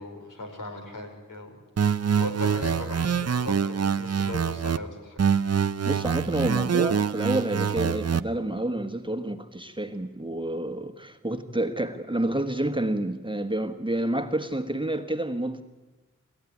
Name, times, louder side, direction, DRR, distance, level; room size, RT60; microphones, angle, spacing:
voice 1, 0.0-5.2, left 2 dB, 80° left, 4.7 m, -38 dB
sound 1, 1.8-4.8 5.2-8.2, right 7 dB, 50° right, 0.7 m, -25 dB
voice 2, 5.8-15.6, right 1 dB, 15° right, 1.4 m, -29 dB
27.5 x 14.0 x 9.7 m
wide cardioid pair, 80°, 32 cm